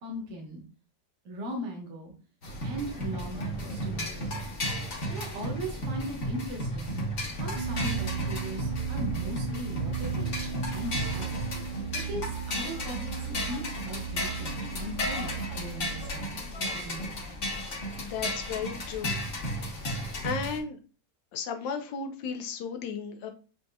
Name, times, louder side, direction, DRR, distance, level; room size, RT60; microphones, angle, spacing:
voice 1, 0.0-0.6 1.2-2.1 2.6-4.4 5.1-7.0 7.4-11.4 11.9-17.1, equal, 45° right, -1 dB, 1.4 m, -39 dB
sound 1, 2.4-20.6, equal, 45° left, 1.3 m, -34 dB
sound 2, 7.5-16.2, right 8 dB, 65° right, 2.1 m, -36 dB
voice 2, 18.0-19.2 20.2-20.8 21.3-23.3, left 6 dB, 85° left, 6 dB, 1.4 m, -34 dB
7.3 x 2.7 x 2.2 m, 0.36 s
omnidirectional pair, 1.9 m